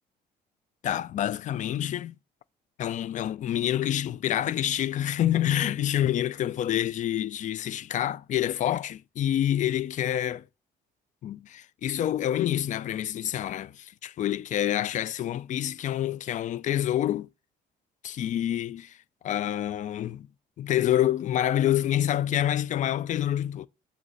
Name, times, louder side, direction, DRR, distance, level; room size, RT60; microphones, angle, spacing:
voice 1, 0.8-2.1 2.8-10.4 11.2-17.3 18.0-19.0 19.2-20.3 20.6-23.7, left 11 dB, 45° left, 0.4 m, -27 dB
8.0 x 2.9 x 5.6 m
cardioid pair, 110°, 17 cm